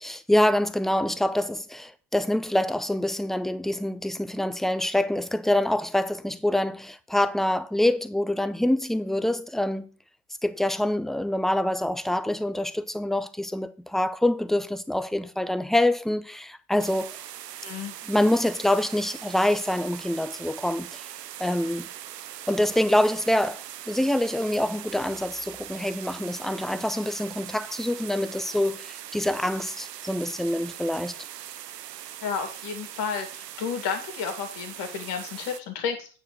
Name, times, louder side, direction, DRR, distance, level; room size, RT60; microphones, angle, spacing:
voice 1, 0.0-9.9 10.4-17.2 18.1-21.1 21.4-21.9 22.5-31.2, left 1 dB, ahead, 0.4 m, -25 dB
sound 1, 16.8-35.6, right 11 dB, 80° right, 0.7 m, -41 dB
voice 2, 17.6-17.9 32.2-36.1, left 6 dB, 60° left, 2.6 m, -32 dB
9.2 x 4.5 x 6.4 m
figure-of-eight pair, 60°, 47 cm